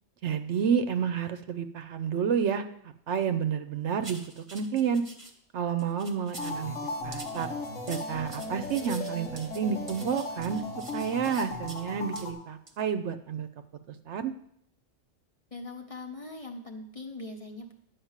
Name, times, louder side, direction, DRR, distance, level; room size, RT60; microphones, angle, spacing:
voice 1, 0.2-2.6 3.1-5.0 5.5-6.7 7.0-7.5 7.9-10.6 10.9-13.5 14.1-14.3, right 7 dB, 65° right, 9 dB, 0.9 m, -30 dB
sound 1, 4.0-5.3 5.8-6.6 7.1-11.8 12.2-12.3 12.7-12.8, right 2 dB, 25° right, 1.2 m, -46 dB
sound 2, 6.4-12.3, left 2 dB, 80° left, 1.7 m, -37 dB
voice 2, 15.5-17.7, left 2 dB, 30° left, 3 dB, 1.0 m, -41 dB
10.0 x 5.2 x 7.3 m, 0.70 s
omnidirectional pair, 1.3 m